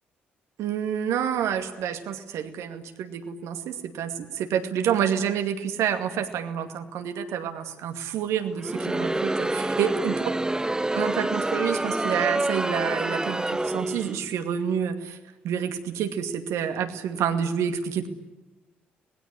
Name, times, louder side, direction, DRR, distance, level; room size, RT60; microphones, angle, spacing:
voice 1, 0.6-10.3 10.9-15.2 15.4-18.1, right 8 dB, 60° right, 8 dB, 2.3 m, -28 dB
Crowd, 8.6-14.3, right 2 dB, 15° right, 1.4 m, -27 dB
26.5 x 20.5 x 9.9 m, 1.1 s
figure-of-eight pair, 45°, 6 cm